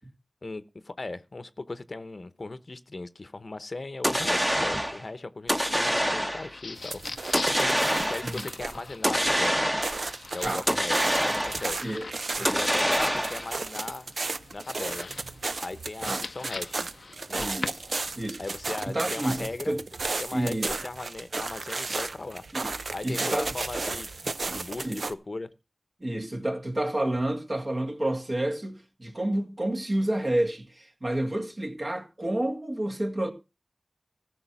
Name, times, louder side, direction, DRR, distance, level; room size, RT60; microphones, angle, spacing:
voice 1, 0.4-9.7 10.3-11.9 12.4-14.1 14.5-15.1 15.6-16.9 17.3-17.6 18.4-19.8 20.2-22.4 22.9-25.5, left 2 dB, 55° left, 0.8 m, -38 dB
sound 1, 4.0-5.0 5.5-6.5 7.3-8.4 9.0-10.1 10.7-11.8 12.4-13.5, equal, 10° right, 1.1 m, -26 dB
sound 2, 6.3-18.3, left 3 dB, 85° left, 0.6 m, -43 dB
sound 3, 6.8-8.9 9.2-25.1, right 3 dB, 80° right, 0.6 m, -34 dB
voice 2, 17.3-17.8 18.1-18.4 18.9-19.8 20.3-20.7 21.3-21.4 21.9-22.0 22.5-22.7 23.0-23.5 24.5-25.0 26.0-33.3, right 1 dB, 45° right, 2.0 m, -30 dB
14.5 x 6.2 x 6.0 m
wide cardioid pair, 60°, 0 cm